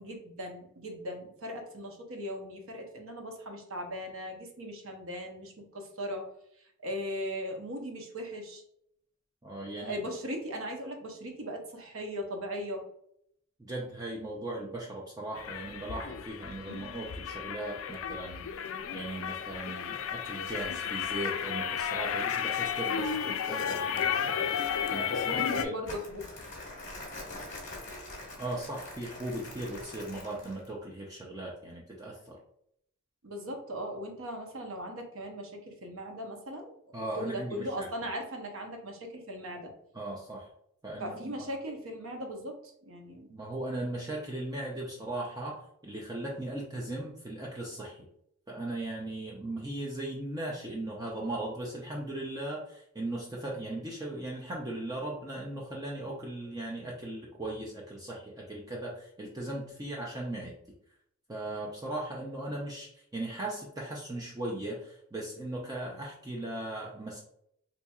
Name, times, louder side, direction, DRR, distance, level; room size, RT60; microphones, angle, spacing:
voice 1, 0.0-6.3 6.8-8.6 9.8-12.8 25.3-26.3 33.2-36.7 37.2-39.7 41.0-43.3, equal, 75° right, 3 dB, 0.8 m, -38 dB
voice 2, 9.4-10.0 13.6-24.5 24.9-25.7 28.4-32.4 36.9-37.9 39.9-40.5 40.8-41.4 43.3-48.1 48.5-60.5 61.3-67.2, right 1 dB, 15° right, -3 dB, 0.4 m, -38 dB
sound 1, 15.3-25.6, left 7 dB, 70° left, 0.3 m, -33 dB
Crumpling crinkling, 25.8-30.7, left 2 dB, 35° left, 1.1 m, -44 dB
4.2 x 2.8 x 2.3 m, 0.71 s
head